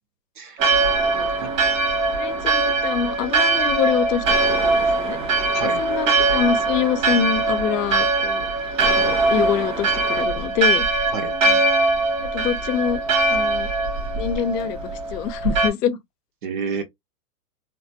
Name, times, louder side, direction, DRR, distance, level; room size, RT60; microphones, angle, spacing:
Church bell, 0.6-15.7, right 3 dB, 55° right, 1.4 m, -21 dB
voice 1, 2.2-5.2 5.6-8.5 8.8-11.0 11.4-11.6 12.2-13.0 13.3-13.7 14.1-16.0, left 9 dB, 90° left, 0.7 m, -25 dB
voice 2, 5.1-5.8 11.1-11.3 16.4-16.8, right 5 dB, 35° right, 0.5 m, -30 dB
3.2 x 2.2 x 2.6 m
supercardioid pair, 160°, 47 cm